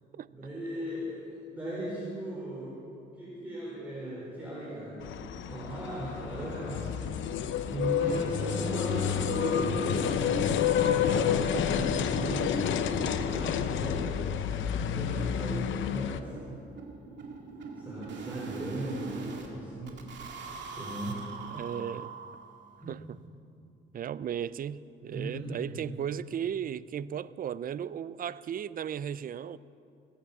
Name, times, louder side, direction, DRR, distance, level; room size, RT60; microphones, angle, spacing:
voice 1, 0.3-2.8 3.1-7.3 7.6-14.0 14.7-16.3 17.8-19.9 20.7-21.2 22.8-22.9 25.1-25.9, right 1 dB, 10° right, 4.5 m, -37 dB
sound 1, 5.0-16.2, left 8 dB, 75° left, 0.8 m, -29 dB
sound 2, 10.7-13.4 14.0-14.1, left 3 dB, 45° left, 2.1 m, -45 dB
sound 3, 12.6-12.7 13.0-13.1 13.4-13.5 13.9-14.0 14.3-19.5 19.9-22.6, right 5 dB, 65° right, 2.2 m, -43 dB
voice 2, 21.5-22.1 22.9-23.2 23.9-29.6, right 9 dB, 45° right, 0.4 m, -35 dB
19.0 x 8.9 x 7.2 m
cardioid pair, 90°, 20 cm